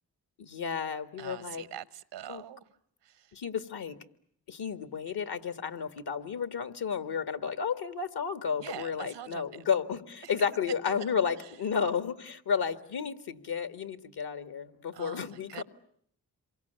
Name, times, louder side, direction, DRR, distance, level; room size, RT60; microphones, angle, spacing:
voice 1, 0.4-1.6 2.3-2.4 3.3-4.0 4.5-15.6, left 6 dB, 65° left, 2.0 m, -32 dB
voice 2, 1.2-2.7 3.0-3.4 8.6-9.7 10.2-10.3 11.4-11.5 14.9-15.6, right 11 dB, 85° right, 1.1 m, -44 dB
27.5 x 23.5 x 8.2 m
supercardioid pair, 45°, 41 cm